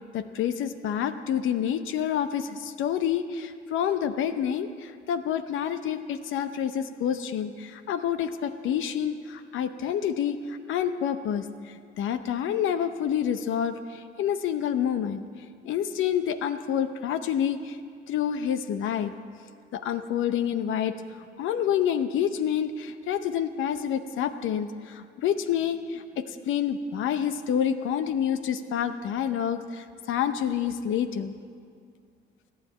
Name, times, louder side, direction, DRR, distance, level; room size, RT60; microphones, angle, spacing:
voice 1, 0.1-15.2 15.6-17.8 18.1-19.1 19.7-31.3, left 9 dB, 80° left, 10 dB, 0.8 m, -28 dB
17.5 x 9.6 x 8.6 m, 2.3 s
cardioid pair, 90°, 20 cm